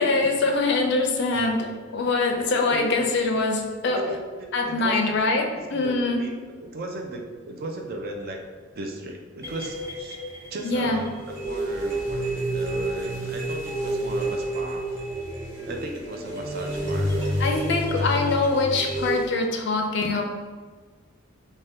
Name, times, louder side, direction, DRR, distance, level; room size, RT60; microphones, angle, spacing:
voice 1, 0.0-4.1 4.5-6.2 10.6-11.0 17.4-20.2, left 3 dB, 60° left, 3 dB, 0.4 m, -24 dB
voice 2, 2.7-3.4 3.8-8.4 8.8-10.2 10.5-14.9 15.6-17.3, right 2 dB, 50° right, 2 dB, 0.4 m, -36 dB
sound 1, 9.4-19.3, right 1 dB, 15° right, 0.7 m, -29 dB
2.6 x 2.2 x 3.4 m, 1.5 s
head